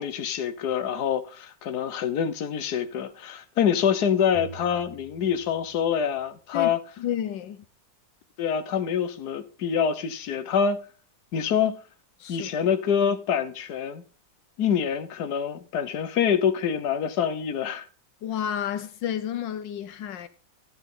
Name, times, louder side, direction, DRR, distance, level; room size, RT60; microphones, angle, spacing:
voice 1, 0.0-6.8 8.4-10.8 11.3-11.8 12.3-14.0 14.6-17.8, left 8 dB, 65° left, 1.6 m, -26 dB
sound 1, 4.3-6.3, right 4 dB, 80° right, 2.4 m, -47 dB
voice 2, 6.5-7.6 12.2-12.7 18.2-20.3, left 9 dB, 85° left, 1.5 m, -31 dB
14.5 x 9.0 x 3.9 m
omnidirectional pair, 1.9 m